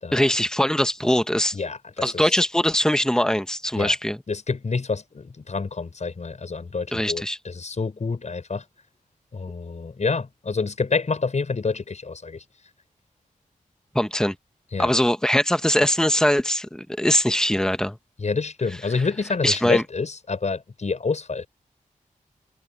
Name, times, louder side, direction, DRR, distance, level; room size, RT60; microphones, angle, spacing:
voice 1, 0.1-1.6 2.0-4.2 6.9-7.4 13.9-14.4 14.8-18.0 19.4-19.8, left 1 dB, 5° left, 1.2 m, -21 dB
voice 2, 1.5-2.3 3.7-3.9 4.3-8.6 9.3-12.4 14.7-14.9 18.2-21.5, left 4 dB, 55° left, 6.3 m, -28 dB
wide cardioid pair, 90°, 14 cm